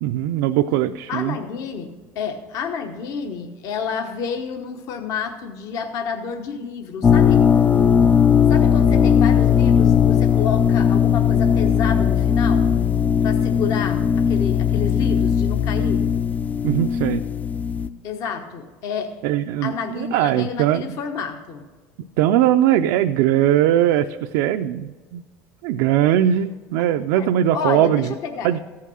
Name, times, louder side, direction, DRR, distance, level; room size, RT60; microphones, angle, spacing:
voice 1, 0.0-1.4 16.6-17.2 19.2-21.0 22.2-25.2 25.6-28.1 28.4-28.6, right 11 dB, 80° right, 6 dB, 0.4 m, -20 dB
voice 2, 1.1-7.4 8.5-12.7 13.2-16.1 18.0-19.2 19.6-21.7 27.1-27.3 27.5-28.5, left 6 dB, 55° left, 5 dB, 1.0 m, -29 dB
sound 1, 7.0-17.9, left 7 dB, 25° left, 0.3 m, -18 dB
15.0 x 5.6 x 6.2 m, 1.3 s
cardioid pair, 130°, 7 cm